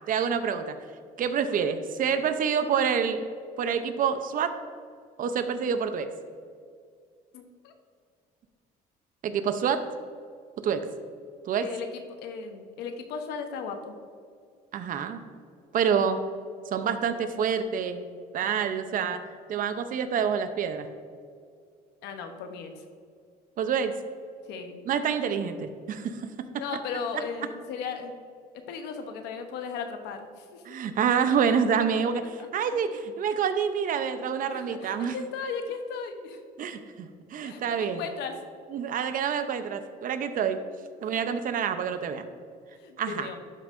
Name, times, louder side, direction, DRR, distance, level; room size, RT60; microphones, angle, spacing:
voice 1, 0.1-0.8 1.2-3.2 3.6-4.6 5.2-6.1 9.2-9.9 10.6-10.9 11.4-11.7 14.7-15.2 15.7-16.2 16.7-18.0 18.3-19.2 19.5-20.9 23.6-23.9 24.9-26.3 30.7-35.1 36.6-38.0 38.7-40.6 41.0-42.3 43.0-43.3, right 7 dB, 55° right, 9 dB, 0.6 m, -27 dB
voice 2, 7.3-7.7 11.6-14.0 22.0-22.8 24.4-24.8 26.6-28.2 28.5-30.8 32.2-32.8 34.5-36.4 37.4-38.4 40.9-41.2 42.8-43.4, left 5 dB, 90° left, 6 dB, 0.9 m, -37 dB
11.5 x 5.4 x 2.6 m, 2.2 s
cardioid pair, 110°, 17 cm